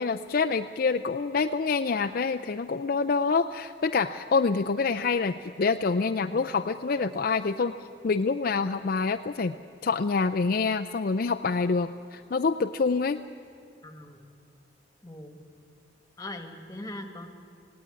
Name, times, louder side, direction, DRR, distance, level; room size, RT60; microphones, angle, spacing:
voice 1, 0.0-7.7 8.0-9.5 9.8-13.2, left 4 dB, 50° left, 7 dB, 0.5 m, -26 dB
voice 2, 13.8-14.3 15.0-15.4 16.2-17.3, left 1 dB, 20° left, 6 dB, 1.6 m, -41 dB
19.0 x 17.5 x 9.6 m, 2.4 s
head